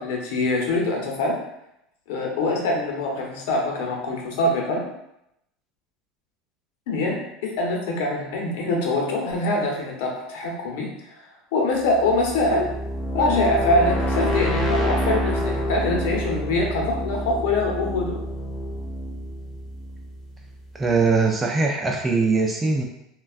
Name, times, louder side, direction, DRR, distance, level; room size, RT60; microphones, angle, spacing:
voice 1, 0.0-1.4 2.1-4.9 6.9-10.9 11.5-12.7 13.1-18.2, left 2 dB, 80° left, 0 dB, 0.7 m, -24 dB
sound 1, 11.9-20.7, equal, 15° left, 0.6 m, -27 dB
voice 2, 20.7-22.8, right 4 dB, 15° right, 0 dB, 0.3 m, -21 dB
3.2 x 2.3 x 2.4 m, 0.81 s
supercardioid pair, 130°, 0 cm